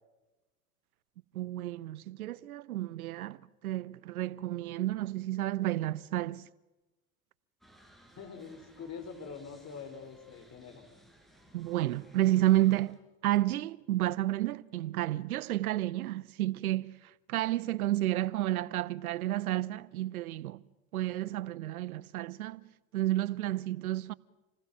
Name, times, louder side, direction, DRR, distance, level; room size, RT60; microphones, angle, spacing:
voice 1, 1.3-6.5 11.5-20.6 20.9-24.1, right 15 dB, 90° right, 0.8 m, -31 dB
sound 1, 7.6-13.0, equal, ahead, 5.2 m, -60 dB
voice 2, 8.2-10.9, left 5 dB, 40° left, 5.5 m, -44 dB
28.0 x 20.0 x 7.6 m
hypercardioid pair, 85°, 42 cm